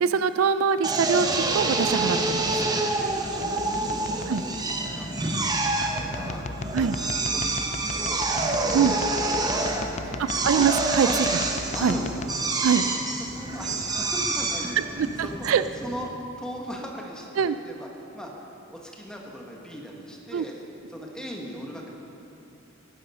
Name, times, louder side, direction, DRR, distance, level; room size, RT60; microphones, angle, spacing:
voice 1, 0.0-2.5 4.3-4.4 6.7-7.0 8.7-8.9 10.2-11.1 11.8-12.0 12.6-12.8 15.0-15.6 17.4-17.6 20.3-20.4, right 7 dB, 75° right, 12 dB, 0.4 m, -23 dB
Drill, 0.8-16.1, right 2 dB, 20° right, 0.8 m, -27 dB
sound 1, 2.4-12.3, left 3 dB, 35° left, 0.4 m, -38 dB
voice 2, 3.0-6.4 6.8-8.3 8.5-10.5 11.0-11.3 11.7-12.3 12.6-12.9 13.2-15.3 15.8-16.1 16.4-17.9 18.1-18.3 18.7-20.6 20.9-21.9, equal, 5° left, -1 dB, 1.4 m, -39 dB
10.5 x 10.5 x 5.6 m, 2.8 s
head